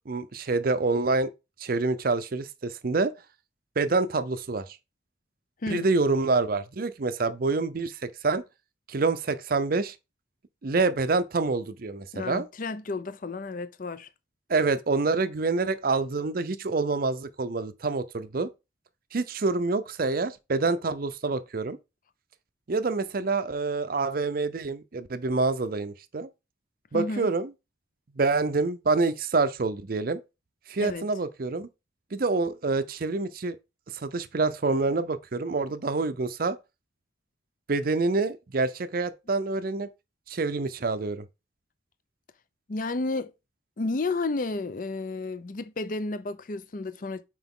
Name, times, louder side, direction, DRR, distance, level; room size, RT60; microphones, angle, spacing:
voice 1, 0.1-1.3 1.6-3.1 3.8-4.8 5.7-8.4 8.9-10.0 10.6-12.5 14.5-18.5 19.1-21.8 22.7-26.3 26.9-27.5 28.2-30.2 30.7-31.7 32.1-33.6 33.9-36.6 37.7-39.9 40.3-41.3, right 3 dB, 50° right, 0.5 m, -27 dB
voice 2, 12.1-14.1 26.9-27.3 30.8-31.1 42.7-43.3 43.8-47.2, left 3 dB, 45° left, 0.5 m, -31 dB
5.9 x 4.7 x 3.6 m
head